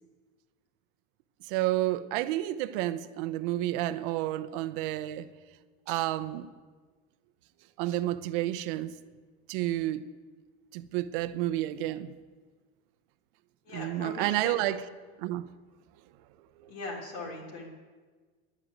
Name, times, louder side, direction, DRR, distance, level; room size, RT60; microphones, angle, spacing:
voice 1, 1.4-5.3 5.9-6.5 7.8-8.9 9.5-10.1 10.7-12.1 13.7-14.8 15.2-15.5 16.6-16.7, right 15 dB, 60° right, 0.7 m, -30 dB
voice 2, 13.6-14.8 16.7-17.7, left 2 dB, 65° left, 3.2 m, -40 dB
11.0 x 7.9 x 9.0 m
cardioid pair, 170°, 31 cm